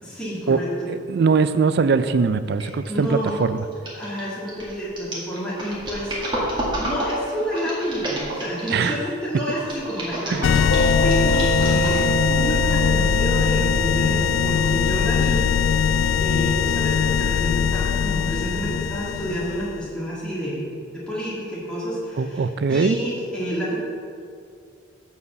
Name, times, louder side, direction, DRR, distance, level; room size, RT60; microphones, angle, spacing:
voice 1, 0.0-0.9 2.9-3.4 3.9-23.8, equal, 5° left, -8 dB, 2.1 m, -30 dB
voice 2, 0.9-3.6 8.7-8.9 10.3-10.5 22.2-23.0, right 5 dB, 55° right, 12 dB, 0.4 m, -21 dB
sound 1, 2.6-2.9 3.2-9.0 9.6-12.2 12.7-12.8, right 1 dB, 25° right, 1.9 m, -30 dB
sound 2, 10.4-19.8, left 7 dB, 80° left, 0.3 m, -21 dB
Mallet percussion, 10.7-17.1, right 3 dB, 45° left, 1.4 m, -28 dB
8.4 x 4.8 x 6.7 m, 2.3 s
head